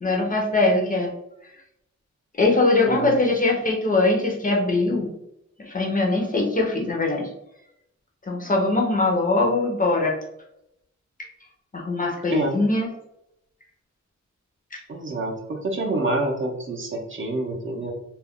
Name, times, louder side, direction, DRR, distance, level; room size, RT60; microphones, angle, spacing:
voice 1, 0.0-1.1 2.4-5.1 5.7-7.3 8.3-10.1 11.7-12.9, left 2 dB, 30° left, -1 dB, 0.5 m, -21 dB
voice 2, 2.8-3.2 12.3-12.6 14.9-17.9, right 2 dB, 40° right, 1 dB, 0.5 m, -27 dB
2.3 x 2.1 x 3.5 m, 0.81 s
wide cardioid pair, 155°, 30 cm